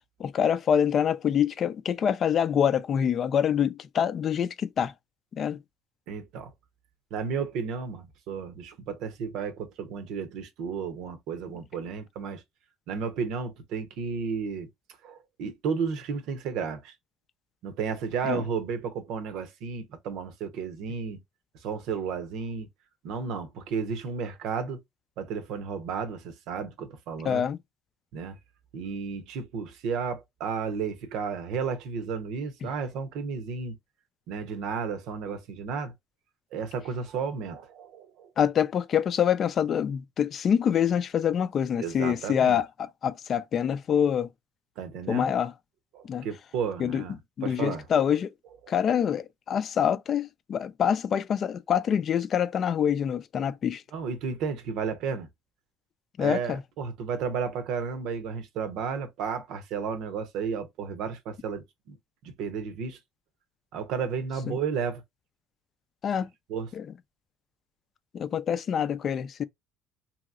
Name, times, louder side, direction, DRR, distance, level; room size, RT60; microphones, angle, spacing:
voice 1, 0.2-4.9 5.4-5.6 18.3-18.4 27.2-27.6 38.4-44.3 45.1-45.5 46.1-46.3 46.8-47.0 47.4-48.3 48.7-53.8 56.2-56.6 64.5-64.6 66.0-66.3 66.7-66.9 68.1-69.4, left 8 dB, 45° left, 0.4 m, -26 dB
voice 2, 6.1-6.5 7.1-12.4 12.9-14.7 15.0-16.9 17.6-21.2 21.6-22.7 23.0-24.8 25.2-27.4 28.1-28.4 28.7-33.8 34.3-35.9 36.5-38.3 41.8-42.6 44.8-45.5 45.9-47.8 48.6-48.7 53.9-55.3 56.2-62.0 62.2-63.0 63.7-65.0 66.5-66.7, right 6 dB, 70° right, 0.8 m, -33 dB
3.0 x 2.8 x 2.4 m
cardioid pair, 105°, 0 cm